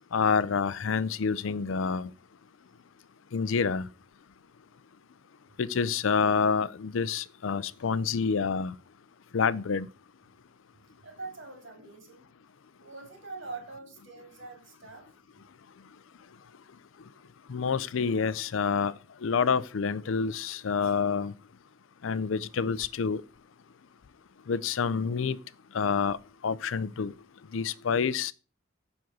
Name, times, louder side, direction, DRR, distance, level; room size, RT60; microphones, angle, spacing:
voice 1, 0.1-2.1 3.3-3.9 5.6-8.7 9.3-9.9 17.5-18.9 19.2-21.3 22.0-23.2 24.5-25.4 25.7-26.2 26.4-27.1 27.5-28.3, left 5 dB, 75° left, 0.5 m, -27 dB
voice 2, 10.9-12.3 12.8-15.4, right 3 dB, 65° right, 3.1 m, -44 dB
7.1 x 6.3 x 6.0 m
head